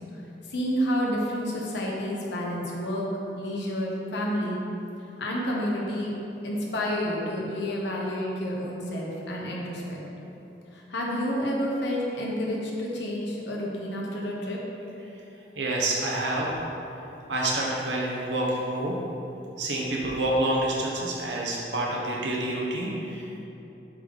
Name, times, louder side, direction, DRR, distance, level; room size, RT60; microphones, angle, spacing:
voice 1, 0.5-3.1 3.4-4.6 5.2-6.1 6.4-10.0 10.7-14.6, equal, 85° left, -3 dB, 1.1 m, -29 dB
voice 2, 15.6-16.5 17.3-19.0 19.6-23.4, right 1 dB, 90° right, -3 dB, 0.8 m, -28 dB
7.6 x 3.8 x 3.9 m, 2.9 s
head